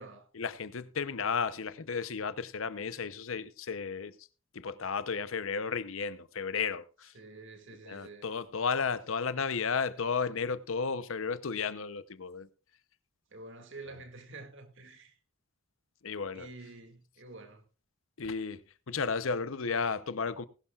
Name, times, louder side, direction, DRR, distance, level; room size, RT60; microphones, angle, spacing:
voice 1, 0.3-4.3 4.5-7.1 7.8-12.5 13.9-14.0 16.0-16.5 18.2-20.5, left 5 dB, 70° left, 0.7 m, -33 dB
voice 2, 7.1-8.3 13.3-15.2 16.3-17.6, right 3 dB, 60° right, 2.1 m, -48 dB
20.0 x 11.5 x 2.4 m
head